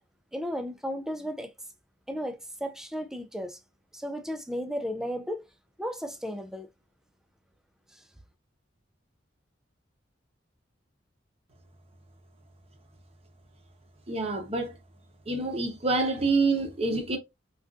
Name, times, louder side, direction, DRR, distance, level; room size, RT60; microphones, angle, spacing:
voice 1, 0.3-1.5 2.1-3.6 3.9-5.5 5.8-6.7 7.9-8.0, equal, 5° right, 0.3 m, -34 dB
voice 2, 14.1-14.7 15.3-17.2, right 3 dB, 35° right, 0.7 m, -27 dB
3.5 x 2.4 x 2.5 m
head